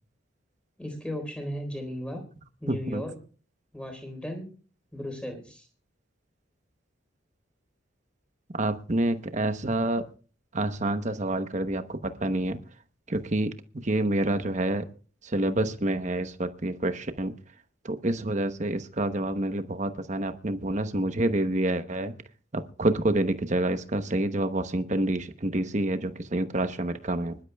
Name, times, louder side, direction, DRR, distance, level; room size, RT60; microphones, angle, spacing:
voice 1, 0.8-2.2 2.6-3.1 3.7-4.5 4.9-5.7, equal, 5° left, 4 dB, 3.9 m, -35 dB
voice 2, 2.7-3.0 8.5-10.1 10.5-12.6 13.1-14.9 15.2-17.4 17.8-22.1 22.5-27.4, right 1 dB, 40° right, 9 dB, 1.0 m, -28 dB
25.5 x 12.0 x 2.3 m, 0.38 s
head